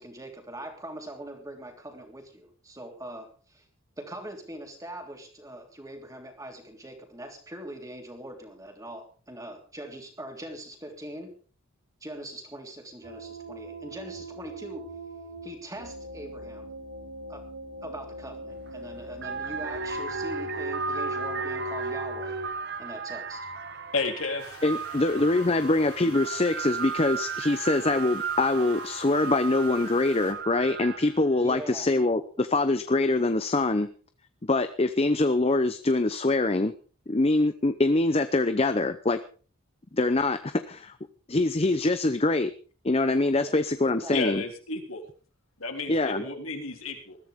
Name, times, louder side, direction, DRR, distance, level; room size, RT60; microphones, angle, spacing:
voice 1, 0.0-3.6 4.0-11.3 12.0-14.9 15.4-16.7 17.3-17.4 17.8-22.4 22.8-23.4 31.4-31.9 43.4-43.5 43.9-44.1 46.2-46.3, right 1 dB, 15° right, 3 dB, 3.3 m, -42 dB
sound 1, 13.0-22.5, right 1 dB, 75° right, 4.8 m, -38 dB
sound 2, 18.5-18.7 19.1-31.2, right 6 dB, 50° right, 0.8 m, -35 dB
voice 2, 23.9-24.6 44.1-45.0 45.6-47.2, left 3 dB, 70° left, 3 dB, 3.6 m, -32 dB
sound 3, 24.4-30.3, left 5 dB, 90° left, 5.4 m, -49 dB
voice 3, 24.6-33.9 34.4-36.7 37.1-39.2 39.9-40.9 41.3-42.5 42.8-44.4 45.9-46.2, left 2 dB, 25° left, 11 dB, 0.7 m, -24 dB
21.0 x 14.0 x 3.7 m, 0.39 s
head